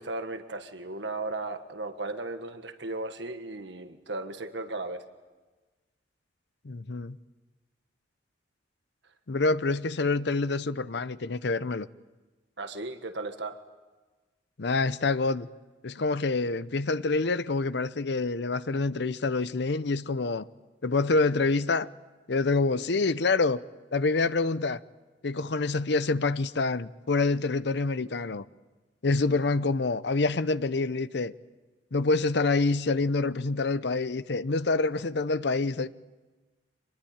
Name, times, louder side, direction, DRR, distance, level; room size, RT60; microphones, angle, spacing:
voice 1, 0.0-5.0 12.6-13.6, right 2 dB, 70° right, 1.6 m, -36 dB
voice 2, 6.6-7.2 9.3-11.9 14.6-15.5 15.8-20.4 20.8-21.9 22.3-23.6 23.9-24.8 25.2-28.4 29.0-31.3 31.9-35.9, left 3 dB, 65° left, 0.7 m, -26 dB
25.0 x 21.5 x 8.8 m
head